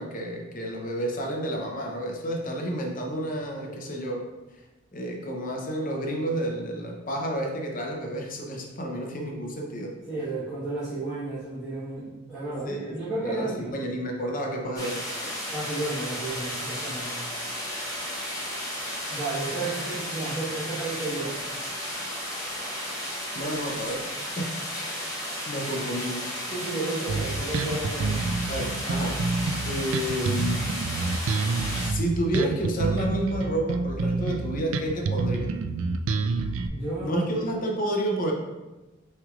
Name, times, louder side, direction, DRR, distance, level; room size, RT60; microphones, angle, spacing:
voice 1, 0.0-4.2 4.9-9.9 12.6-15.3 23.3-24.1 24.4-24.9 25.5-26.2 28.5-29.2 29.7-30.6 31.7-35.5 37.0-38.3, right 1 dB, 40° left, 1 dB, 0.7 m, -30 dB
voice 2, 10.1-13.7 15.5-17.1 19.1-21.3 25.0-25.1 26.5-28.3 36.7-37.4, right 2 dB, ahead, -15 dB, 1.5 m, -32 dB
sound 1, 14.8-31.9, equal, 15° left, 1.0 m, -33 dB
Bass guitar, 27.1-36.7, right 3 dB, 75° right, 0.3 m, -28 dB
5.9 x 3.3 x 2.4 m, 1.1 s
head